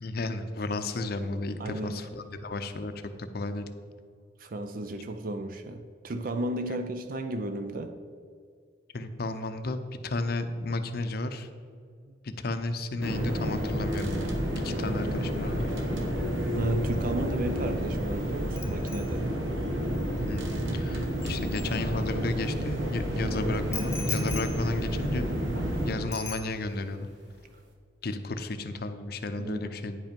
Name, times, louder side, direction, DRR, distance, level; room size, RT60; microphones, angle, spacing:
voice 1, 0.0-2.9 3.2-3.7 8.9-11.5 12.2-14.3 14.6-15.7 20.2-25.3 25.8-27.1 28.0-30.0, left 2 dB, 55° left, 9 dB, 0.6 m, -33 dB
voice 2, 1.6-2.0 4.4-8.0 16.5-19.3 29.4-29.7, right 2 dB, 45° right, 7 dB, 0.4 m, -34 dB
sound 1, 13.0-25.9, equal, 90° right, 1.0 m, -30 dB
Bicycle bell, 18.6-22.4 23.7-25.8 26.1-27.0 27.3-27.5, left 6 dB, 15° left, 0.7 m, -42 dB
sound 2, 21.4-27.7, right 1 dB, 65° right, 1.4 m, -47 dB
9.8 x 5.3 x 5.2 m, 2.2 s
head